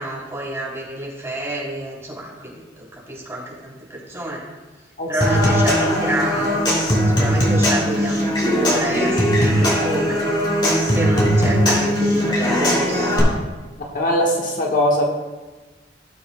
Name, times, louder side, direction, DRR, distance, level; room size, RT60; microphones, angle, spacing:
voice 1, 0.0-4.4 5.1-6.6 7.1-13.4, right 1 dB, 15° right, -6 dB, 3.3 m, -29 dB
Human voice / Acoustic guitar / Percussion, 5.2-13.2, equal, 25° left, 2.8 m, -19 dB
voice 2, 13.9-15.0, left 1 dB, 50° left, -1 dB, 1.3 m, -20 dB
18.0 x 7.0 x 2.2 m, 1.2 s
head